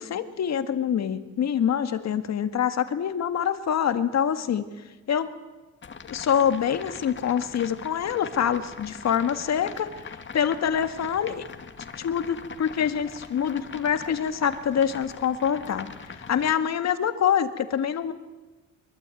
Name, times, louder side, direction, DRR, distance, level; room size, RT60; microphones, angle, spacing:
voice 1, 0.0-4.7 5.1-5.3 6.1-9.9 10.3-11.4 12.0-18.1, left 8 dB, 60° left, 9 dB, 2.0 m, -25 dB
sound 1, 5.8-16.5, left 5 dB, 40° left, 2.2 m, -42 dB
22.5 x 22.5 x 9.2 m, 1.2 s
cardioid pair, 90°, 30 cm